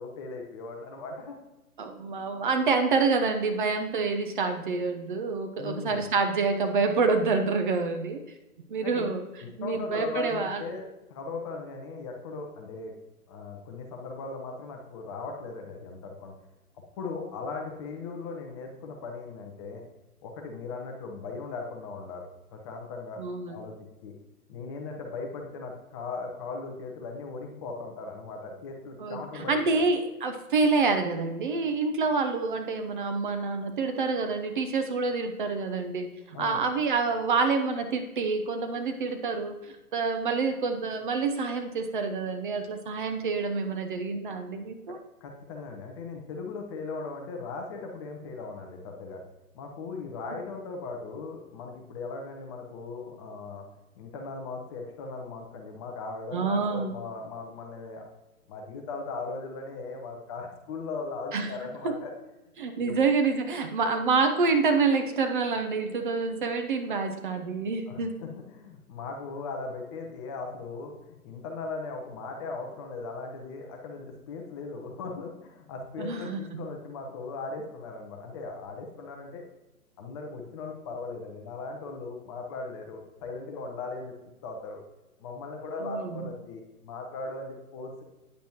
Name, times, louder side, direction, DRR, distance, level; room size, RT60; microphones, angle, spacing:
voice 1, 0.0-1.4 5.6-6.0 8.8-9.1 9.6-10.8 11.1-12.9 13.3-16.3 17.0-19.8 20.2-23.7 24.0-24.1 24.5-29.8 36.3-36.6 45.2-49.2 49.5-53.7 53.9-58.1 58.5-62.1 62.7-62.9 67.9-79.4 80.0-84.1 84.4-84.8 85.2-88.0, left 3 dB, 20° left, 2 dB, 0.8 m, -38 dB
voice 2, 1.8-8.2 8.7-9.2 9.6-10.6 23.2-23.6 29.0-45.0 56.3-56.9 61.3-61.5 61.8-61.9 62.6-68.1 76.0-76.7 85.8-86.2, right 4 dB, 35° right, 6 dB, 0.7 m, -27 dB
9.2 x 8.1 x 3.0 m, 1.0 s
hypercardioid pair, 135°, 44 cm